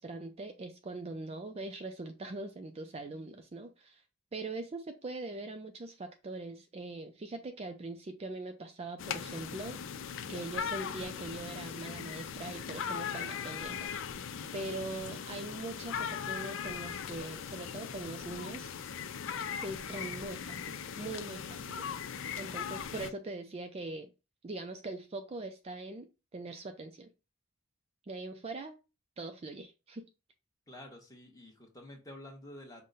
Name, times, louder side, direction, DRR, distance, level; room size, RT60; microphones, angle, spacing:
voice 1, 0.0-4.0 4.3-9.8 10.3-13.9 14.5-18.7 19.6-21.8 22.1-24.1 24.4-26.1 26.3-27.1 28.1-28.8 29.2-30.0, right 2 dB, 30° right, 0.4 m, -42 dB
sound 1, 9.0-23.1, left 7 dB, 65° left, 0.4 m, -39 dB
voice 2, 30.7-32.8, left 1 dB, 15° left, 1.1 m, -49 dB
5.4 x 2.2 x 3.8 m
head